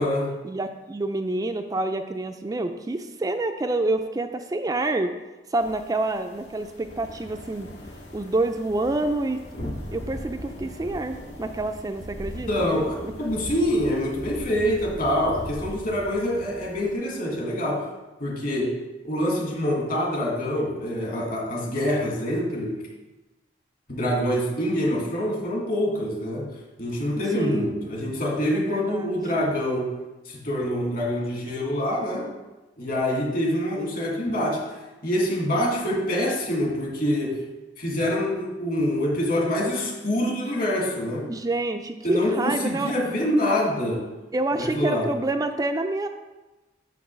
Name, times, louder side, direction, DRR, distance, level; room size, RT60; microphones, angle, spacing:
voice 1, 0.4-5.1 5.5-7.7 8.1-12.7 13.0-13.1 27.3-27.9 28.5-29.2 41.3-42.9 44.3-46.1, right 2 dB, 20° right, 6 dB, 0.4 m, -27 dB
sound 1, 5.5-16.9, left 1 dB, 80° left, 1.8 m, -39 dB
voice 2, 12.5-17.8 18.2-18.7 19.0-22.8 23.9-26.5 26.8-29.9 30.3-32.3 32.8-34.6 35.0-37.4 37.8-41.3 42.0-44.0 44.5-45.1, left 1 dB, 55° left, -1 dB, 1.9 m, -25 dB
6.0 x 5.8 x 6.2 m, 1.1 s
head